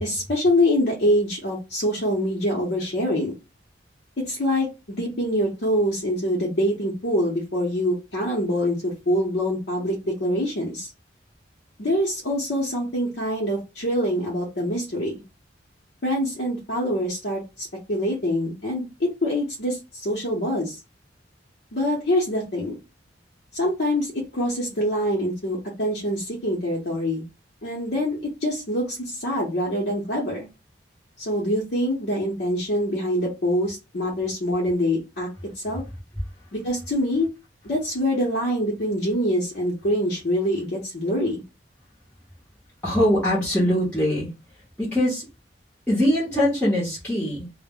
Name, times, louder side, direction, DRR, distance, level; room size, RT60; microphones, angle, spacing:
voice 1, 0.0-3.3 4.3-10.9 11.8-15.2 16.0-20.8 21.7-22.8 23.5-27.2 27.6-30.5 31.2-35.3 35.6-35.8 36.5-37.3 37.6-41.4, equal, 60° left, 0.7 m, -25 dB
voice 2, 42.8-44.3 44.8-45.3 45.9-47.5, equal, 10° left, 0.8 m, -22 dB
2.1 x 2.0 x 3.5 m
head